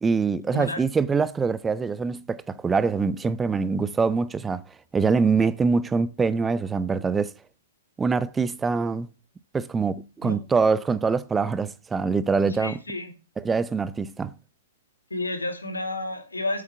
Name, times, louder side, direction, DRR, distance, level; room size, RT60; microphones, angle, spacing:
voice 1, 0.0-4.6 4.9-7.3 8.0-9.1 9.5-12.8 13.4-14.3, right 4 dB, 10° right, 0.5 m, -24 dB
voice 2, 12.6-13.1 15.1-16.6, left 2 dB, 85° left, 2.7 m, -30 dB
8.5 x 8.0 x 6.9 m
figure-of-eight pair, 110°, 0 cm